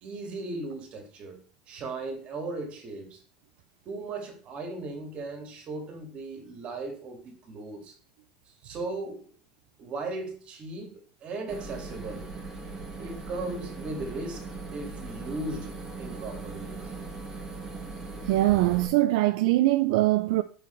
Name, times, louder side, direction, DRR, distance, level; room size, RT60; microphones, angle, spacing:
voice 1, 0.0-1.4 1.7-3.2 3.9-7.9 8.6-9.3 9.8-10.9 11.2-12.3 13.0-15.7 16.0-16.9, right 2 dB, 35° right, 2.0 m, -37 dB
sound 1, 11.5-18.9, right 3 dB, 15° right, 1.6 m, -39 dB
voice 2, 18.2-20.4, right 17 dB, 65° right, 0.4 m, -22 dB
5.5 x 4.8 x 4.5 m
supercardioid pair, 145°, 4 cm